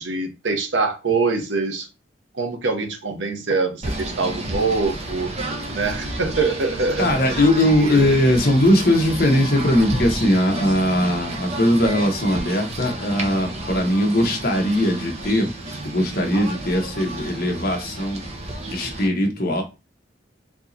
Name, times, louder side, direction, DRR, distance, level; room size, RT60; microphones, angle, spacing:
voice 1, 0.0-1.9 2.3-5.3 5.7-7.1 7.8-8.1, right 4 dB, 90° right, 0.9 m, -24 dB
Singing / Bird, 3.8-19.1, right 2 dB, 35° right, 0.8 m, -31 dB
voice 2, 7.0-15.5 15.8-18.2 18.7-19.6, left 1 dB, 55° left, 1.0 m, -20 dB
4.5 x 2.9 x 2.7 m
head